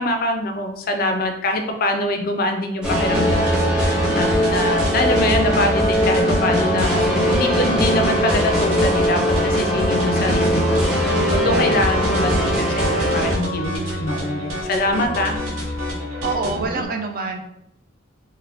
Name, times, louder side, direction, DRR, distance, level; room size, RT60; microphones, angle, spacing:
voice 1, 0.0-15.3, left 1 dB, 45° left, 5 dB, 0.4 m, -24 dB
sound 1, 2.8-13.4, equal, 5° right, 0.6 m, -20 dB
sound 2, 3.1-16.9, equal, 80° right, 0.9 m, -28 dB
voice 2, 16.2-17.4, right 4 dB, 45° right, 4 dB, 0.4 m, -26 dB
4.0 x 2.1 x 2.7 m, 0.81 s
head